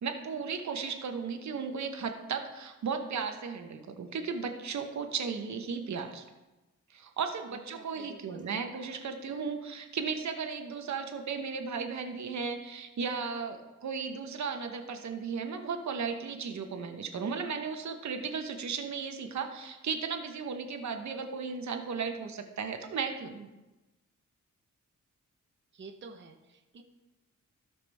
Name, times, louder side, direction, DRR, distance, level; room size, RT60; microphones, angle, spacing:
voice 1, 0.0-6.2 6.9-23.5, right 5 dB, 70° right, 6 dB, 1.0 m, -35 dB
voice 2, 7.5-9.0 25.7-26.8, right 4 dB, 40° right, 3 dB, 0.9 m, -50 dB
16.0 x 5.9 x 3.4 m, 1.1 s
wide cardioid pair, 105°, 30 cm